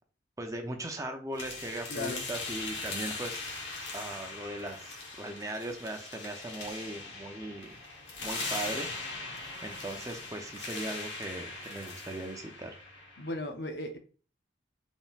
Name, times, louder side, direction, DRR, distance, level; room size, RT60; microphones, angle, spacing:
voice 1, 0.4-3.5 3.9-7.8 8.2-8.9 9.2-12.8, right 1 dB, 20° right, 3 dB, 0.5 m, -39 dB
rocks falling in cave, 1.4-13.3, left 3 dB, 85° left, 1.1 m, -40 dB
voice 2, 1.9-2.3 13.2-14.0, left 2 dB, 65° left, 5 dB, 0.7 m, -36 dB
4.1 x 3.7 x 2.4 m, 0.38 s
head